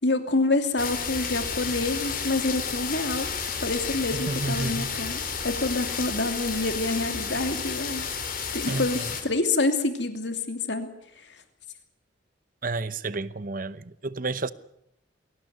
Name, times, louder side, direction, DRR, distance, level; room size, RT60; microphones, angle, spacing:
voice 1, 0.0-3.3 3.6-8.0 8.5-10.9, left 2 dB, 65° left, 2.8 m, -27 dB
sound 1, 0.8-9.2, left 6 dB, 50° left, 3.9 m, -31 dB
voice 2, 4.1-4.9 8.7-9.1 12.6-14.5, right 3 dB, 45° right, 0.9 m, -31 dB
22.0 x 17.5 x 9.5 m
head